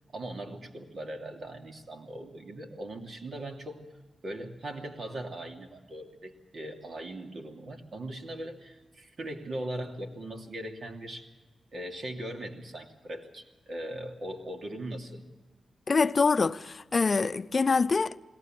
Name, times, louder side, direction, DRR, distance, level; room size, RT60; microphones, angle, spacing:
voice 1, 0.1-3.8 4.2-11.3 11.7-15.2, right 1 dB, 60° right, 2.9 m, -39 dB
voice 2, 15.9-18.2, left 4 dB, 45° left, 0.6 m, -25 dB
21.0 x 18.0 x 7.6 m
cardioid pair, 70°, 0 cm